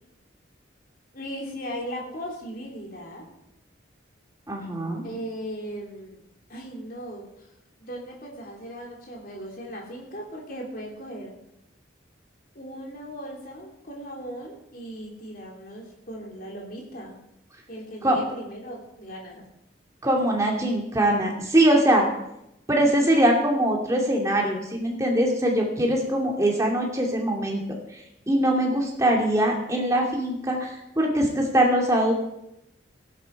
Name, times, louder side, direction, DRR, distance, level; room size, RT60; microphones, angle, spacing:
voice 1, 1.1-3.3 5.0-6.2 6.5-7.5 7.8-11.3 12.5-17.2 17.7-19.4 28.6-29.2, equal, 45° left, -1 dB, 3.3 m, -38 dB
voice 2, 4.5-5.0 18.0-18.2 20.0-22.1 22.7-32.1, right 1 dB, 15° right, 0 dB, 2.5 m, -22 dB
16.0 x 11.0 x 4.8 m, 0.84 s
head